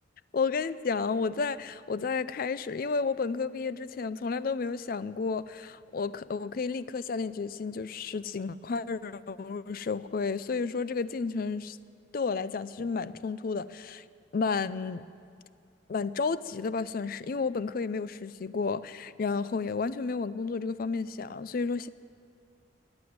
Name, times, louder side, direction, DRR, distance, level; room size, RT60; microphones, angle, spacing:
voice 1, 0.3-11.8 12.1-14.0 14.3-15.1 15.9-21.9, left 4 dB, 50° left, 16 dB, 0.4 m, -32 dB
14.5 x 9.7 x 9.4 m, 2.3 s
head